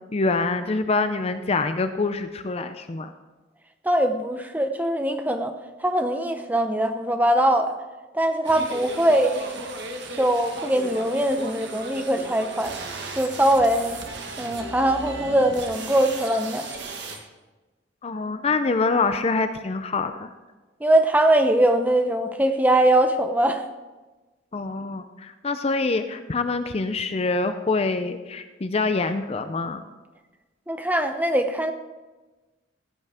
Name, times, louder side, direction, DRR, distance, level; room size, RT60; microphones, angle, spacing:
voice 1, 0.1-3.1 18.0-20.3 24.5-29.8, left 3 dB, 30° left, 9 dB, 0.5 m, -25 dB
voice 2, 3.8-5.5 5.8-7.7 8.1-9.6 10.2-12.8 13.2-14.0 14.4-16.7 20.8-23.6 30.7-31.7, right 1 dB, 10° right, 6 dB, 0.7 m, -22 dB
sound 1, 8.4-17.2, right 2 dB, 60° right, 1.5 m, -36 dB
15.5 x 8.2 x 3.5 m, 1.2 s
head